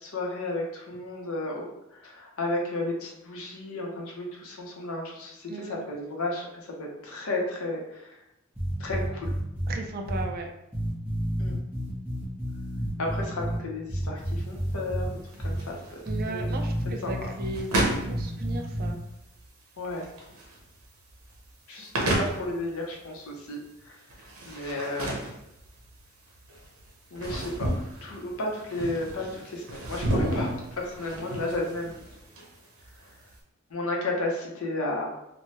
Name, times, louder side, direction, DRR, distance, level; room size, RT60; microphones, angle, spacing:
voice 1, 0.0-1.6 1.9-8.2 8.8-9.3 11.4-11.5 13.0-15.1 15.4-15.8 16.3-16.5 17.0-17.1 19.8-20.1 21.7-24.0 24.5-25.2 27.1-27.7 28.0-32.2 33.7-35.1, left 2 dB, 75° left, 0 dB, 0.7 m, -33 dB
sound 1, 8.5-9.7 10.0-10.2 10.7-13.6 13.9-15.1 15.4-15.6 16.0-18.9, equal, 10° right, 0.9 m, -30 dB
voice 2, 9.7-10.5 16.1-19.0, right 2 dB, 45° right, 3 dB, 0.4 m, -36 dB
sound 2, 14.2-33.4, right 1 dB, 80° right, 0.7 m, -33 dB
3.1 x 2.2 x 2.8 m, 0.86 s
head